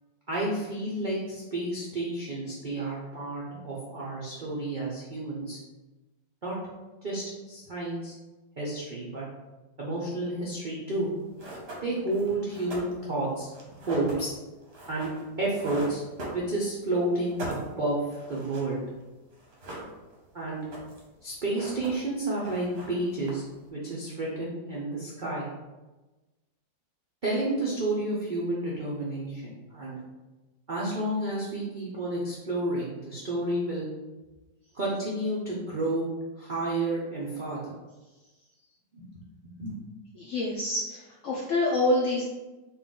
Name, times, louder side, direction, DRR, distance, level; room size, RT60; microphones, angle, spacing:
voice 1, 0.3-5.6 6.4-6.5 7.0-8.2 8.6-9.2 9.8-11.1 11.8-13.5 13.9-14.3 14.9-15.1 15.4-16.0 16.3-18.8 20.3-20.6 21.2-23.4 23.7-25.5 27.2-30.0 30.7-33.9 34.7-36.1 36.4-37.7 38.9-39.0 39.4-39.7, right 2 dB, 75° right, -6 dB, 0.4 m, -30 dB
sound 1, 11.0-11.1 11.4-16.9 17.1-19.0 19.3-20.3 20.5-21.1 21.4-22.1 22.4-23.6, right 1 dB, 45° right, 0.9 m, -41 dB
voice 2, 40.1-42.2, left 2 dB, 70° left, -5 dB, 0.7 m, -27 dB
4.3 x 2.6 x 3.7 m, 1.1 s
omnidirectional pair, 2.0 m